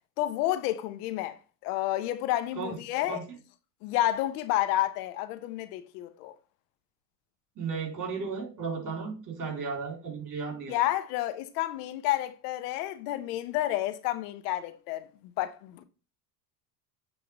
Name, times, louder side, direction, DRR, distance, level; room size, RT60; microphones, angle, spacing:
voice 1, 0.2-3.2 3.8-6.3 10.7-15.8, left 14 dB, 70° left, 0.9 m, -30 dB
voice 2, 7.6-10.8, right 5 dB, 40° right, 3.9 m, -34 dB
8.8 x 3.6 x 4.8 m
hypercardioid pair, 85°, 48 cm